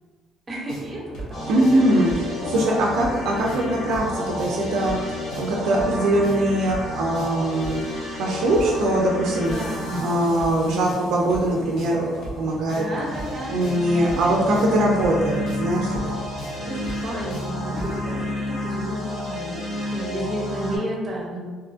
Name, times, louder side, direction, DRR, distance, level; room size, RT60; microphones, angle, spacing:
voice 1, 0.5-1.5 1.9-2.6 9.3-10.5 12.6-14.3 14.7-14.8 16.6-19.6 19.9-21.4, right 1 dB, 20° right, -4 dB, 0.6 m, -33 dB
sound 1, 0.7-18.0, right 1 dB, 65° left, 0.7 m, -38 dB
sound 2, 1.3-11.4 12.8-20.8, left 1 dB, 25° left, 0.8 m, -31 dB
voice 2, 1.5-7.8 8.2-9.5 10.0-12.9 13.5-16.0, right 1 dB, 60° right, -1 dB, 0.3 m, -22 dB
2.6 x 2.4 x 2.4 m, 1.5 s
cardioid pair, 175°, 0 cm